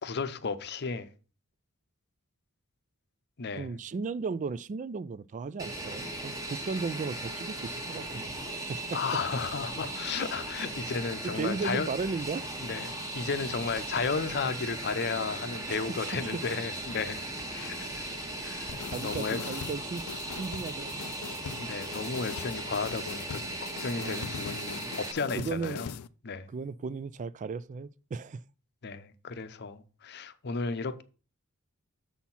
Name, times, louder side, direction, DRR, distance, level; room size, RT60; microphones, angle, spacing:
voice 1, 0.0-1.1 3.4-3.7 8.9-11.9 12.6-18.0 18.4-19.4 21.6-25.9 26.2-26.5 28.8-31.0, left 4 dB, 50° left, 0.7 m, -34 dB
voice 2, 3.5-8.2 8.5-9.0 11.2-12.5 15.7-16.1 18.0-18.1 18.9-21.0 23.9-24.3 25.4-25.9 26.5-28.4, right 4 dB, 35° right, 0.3 m, -36 dB
Fixed-wing aircraft airplane, 5.6-25.1, right 1 dB, 15° right, 1.1 m, -38 dB
sound 1, 18.7-26.1, left 7 dB, 85° left, 0.4 m, -42 dB
7.1 x 4.4 x 5.6 m
head